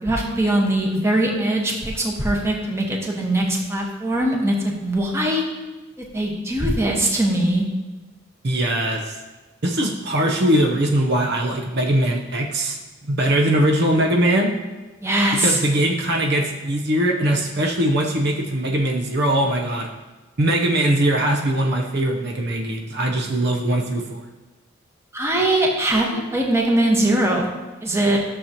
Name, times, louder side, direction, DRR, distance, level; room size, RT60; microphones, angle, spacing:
voice 1, 0.0-5.4 6.1-7.6 15.0-15.6 25.1-27.5 27.8-28.2, right 1 dB, 15° right, -1 dB, 1.2 m, -21 dB
voice 2, 8.4-9.2 9.6-14.5 15.3-19.9 20.4-24.2, right 1 dB, 60° right, 1 dB, 0.8 m, -21 dB
12.5 x 6.7 x 2.9 m, 1.2 s
head